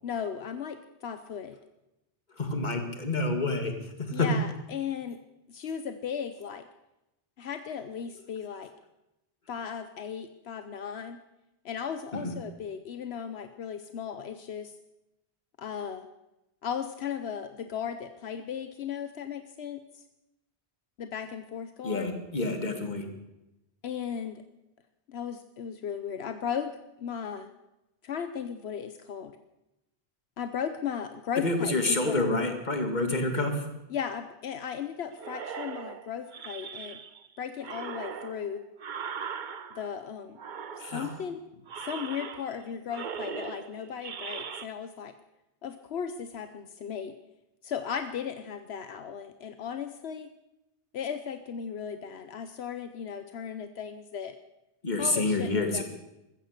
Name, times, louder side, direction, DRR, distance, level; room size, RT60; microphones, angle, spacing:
voice 1, 0.0-1.5 4.1-5.2 5.5-6.6 7.4-8.7 9.5-11.2 11.6-14.7 15.6-16.1 16.6-20.0 21.0-22.1 23.8-24.4 25.1-27.5 28.0-29.4 30.4-32.3 33.9-37.0 37.4-38.6 39.7-40.4 40.8-41.4 41.8-45.1 45.6-47.1 47.6-50.3 50.9-54.4 55.0-55.8, left 7 dB, 80° left, 9 dB, 1.1 m, -36 dB
voice 2, 2.4-3.7 4.0-4.3 12.1-12.3 21.8-23.1 31.4-33.7 40.8-41.1 54.8-55.8, left 2 dB, 45° left, 5 dB, 2.2 m, -28 dB
sound 1, 35.2-37.3 37.6-40.0 40.4-41.3 41.7-42.6 42.9-44.7, right 6 dB, 50° right, 0.9 m, -39 dB
15.0 x 14.0 x 6.6 m, 0.93 s
omnidirectional pair, 1.1 m